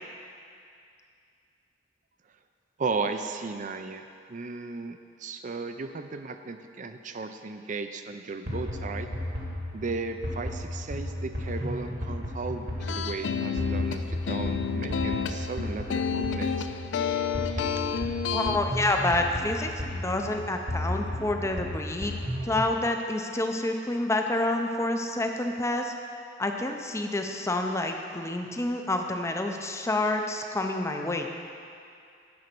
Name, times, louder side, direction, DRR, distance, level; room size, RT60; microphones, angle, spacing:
voice 1, 2.8-4.0 4.3-9.1 9.7-16.7, right 4 dB, 45° right, 8 dB, 0.5 m, -35 dB
sound 1, 8.5-22.7, left 1 dB, 65° right, 1.9 m, -34 dB
sound 2, 12.8-18.6, left 7 dB, 80° left, 0.4 m, -30 dB
voice 2, 18.3-22.1 22.4-25.9 26.4-31.3, left 2 dB, 15° left, 4 dB, 0.5 m, -28 dB
9.5 x 5.1 x 6.0 m, 2.4 s
head